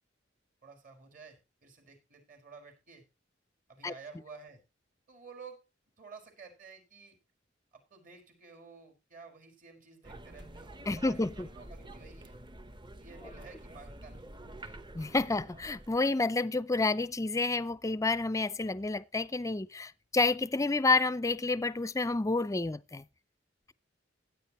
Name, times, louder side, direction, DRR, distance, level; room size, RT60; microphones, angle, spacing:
voice 1, 0.6-3.0 3.7-4.6 5.1-5.6 6.0-7.2 7.7-12.3 13.0-14.3, right 4 dB, 45° right, 5.0 m, -52 dB
sound 1, 10.0-16.0, right 1 dB, 25° right, 0.9 m, -48 dB
voice 2, 10.9-11.5 14.9-23.0, left 3 dB, 15° left, 0.5 m, -29 dB
16.5 x 9.0 x 3.1 m
head